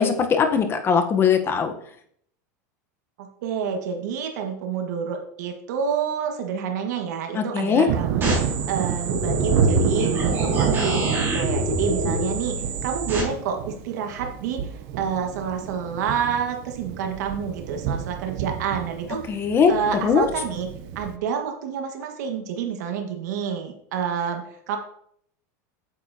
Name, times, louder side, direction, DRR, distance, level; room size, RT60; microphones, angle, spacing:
voice 1, 0.0-1.7 7.3-7.9 19.3-19.7 20.0-20.3, left 6 dB, 25° left, 7 dB, 0.9 m, -20 dB
voice 2, 3.2-19.2 19.7-24.8, right 7 dB, 75° right, 4 dB, 1.5 m, -28 dB
Thunder, 7.9-21.2, right 7 dB, 55° right, 0.7 m, -29 dB
sound 1, 8.2-13.2, right 1 dB, 25° right, 3.5 m, -26 dB
8.9 x 7.1 x 2.8 m, 0.66 s
supercardioid pair, 135°, 9 cm